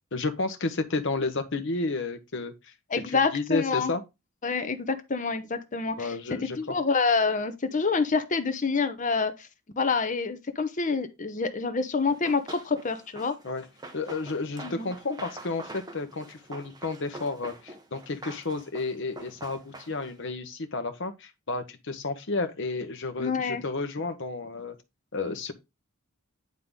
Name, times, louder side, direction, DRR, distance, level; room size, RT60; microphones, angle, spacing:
voice 1, 0.1-2.7 3.1-4.0 6.0-6.7 13.4-13.7 13.9-24.8 25.1-25.5, left 3 dB, 60° left, 1.0 m, -31 dB
voice 2, 2.9-3.9 4.4-9.5 9.8-13.3 14.6-14.9 23.2-23.6, left 4 dB, 35° left, 0.7 m, -27 dB
Run, 12.1-20.2, right 2 dB, 20° right, 0.9 m, -45 dB
9.5 x 3.7 x 3.7 m
head